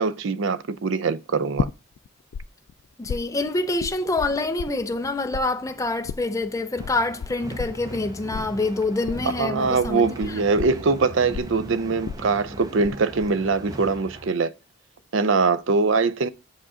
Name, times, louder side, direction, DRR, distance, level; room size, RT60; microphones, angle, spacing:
voice 1, 0.0-1.7 9.4-14.5 15.1-16.3, right 4 dB, 65° right, 0.5 m, -22 dB
sound 1, 1.6-2.4 2.7-5.1 5.3-12.9 13.2-13.7, left 6 dB, 85° left, 0.3 m, -33 dB
voice 2, 3.0-10.5, left 2 dB, 15° left, 0.5 m, -26 dB
sound 2, 6.8-14.3, right 1 dB, 20° right, 0.7 m, -39 dB
6.7 x 5.1 x 3.6 m
head